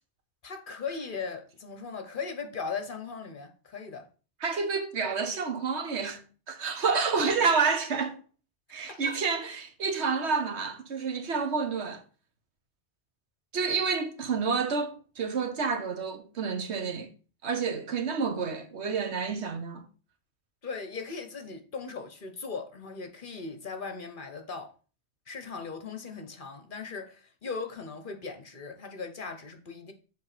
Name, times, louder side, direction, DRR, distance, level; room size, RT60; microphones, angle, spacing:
voice 1, 0.4-4.1 8.9-9.2 20.6-24.7 25.3-29.9, left 5 dB, 50° left, 1.2 m, -38 dB
voice 2, 4.4-8.2 8.7-12.0 13.5-17.1 17.4-19.8, right 5 dB, 80° right, 1.4 m, -29 dB
7.6 x 3.5 x 6.0 m
omnidirectional pair, 1.1 m